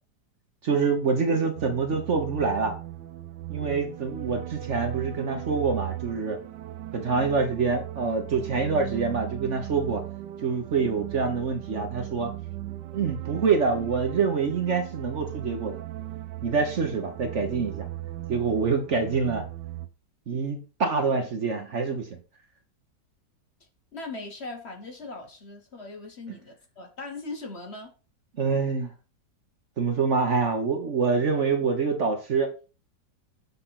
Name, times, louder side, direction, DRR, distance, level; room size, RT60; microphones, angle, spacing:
voice 1, 0.6-2.8 3.5-6.4 6.9-10.0 10.4-12.3 12.9-15.8 16.4-17.9 18.3-19.4 20.3-22.2 28.4-28.9 29.8-32.5, right 5 dB, 50° right, 5 dB, 1.1 m, -26 dB
sound 1, 1.6-19.9, right 14 dB, 85° right, 1.3 m, -37 dB
voice 2, 23.9-27.9, left 3 dB, 40° left, 3 dB, 1.2 m, -39 dB
6.7 x 4.1 x 5.7 m, 0.34 s
omnidirectional pair, 1.9 m